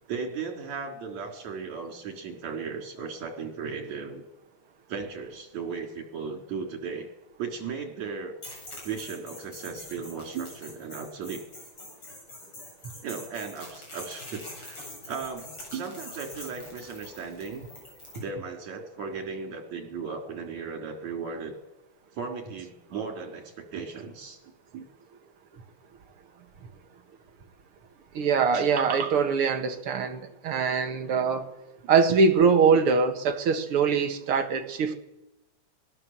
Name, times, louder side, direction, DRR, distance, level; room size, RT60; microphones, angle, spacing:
voice 1, 0.1-4.2 4.9-7.1 7.4-8.3 8.8-11.4 13.0-14.8 15.1-17.7 18.1-21.6 22.1-24.4 24.7-24.9, right 5 dB, 70° right, 3 dB, 5.3 m, -36 dB
sound 1, 8.4-18.2, left 1 dB, 45° left, 8.6 m, -44 dB
voice 2, 28.1-31.5 31.9-35.0, right 5 dB, 50° right, 6 dB, 2.3 m, -23 dB
24.5 x 19.5 x 7.5 m, 0.97 s
omnidirectional pair, 3.3 m